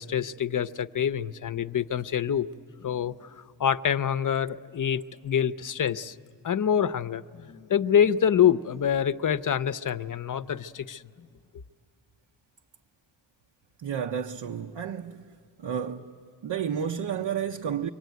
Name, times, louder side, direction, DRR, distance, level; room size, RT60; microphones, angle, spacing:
voice 1, 0.0-2.5 2.8-6.2 6.4-11.3, left 8 dB, 45° left, 0.6 m, -26 dB
voice 2, 13.8-15.2 15.6-16.1 16.4-17.9, right 8 dB, 80° right, 0.8 m, -31 dB
25.5 x 23.5 x 9.3 m
wide cardioid pair, 80°, 42 cm